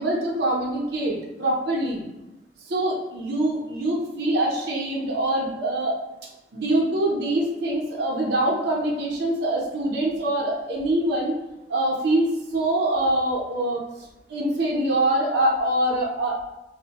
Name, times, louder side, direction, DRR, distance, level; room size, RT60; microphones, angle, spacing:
voice 1, 0.0-2.0 2.7-6.0 6.5-11.4 11.7-13.8 14.3-16.5, right 1 dB, 70° right, -4 dB, 0.6 m, -24 dB
2.8 x 2.0 x 2.8 m, 0.96 s
head